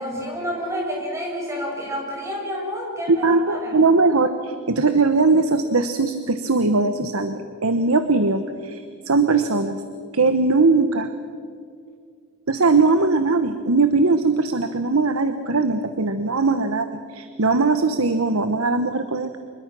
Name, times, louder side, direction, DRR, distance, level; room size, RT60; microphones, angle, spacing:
voice 1, 0.0-3.7, equal, 15° right, -2 dB, 6.8 m, -29 dB
voice 2, 3.1-9.8 10.1-11.1 12.5-19.4, right 3 dB, 80° right, 9 dB, 1.1 m, -20 dB
25.5 x 22.0 x 6.2 m, 2.2 s
head